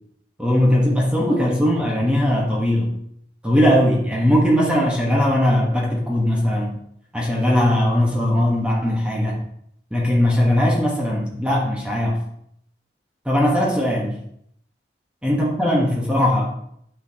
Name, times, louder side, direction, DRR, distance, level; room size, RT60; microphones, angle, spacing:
voice 1, 0.4-2.9 3.4-6.8 7.1-9.4 9.9-12.2 13.2-14.2 15.2-16.5, left 1 dB, 5° right, -3 dB, 1.2 m, -19 dB
9.2 x 6.4 x 2.9 m, 0.71 s
head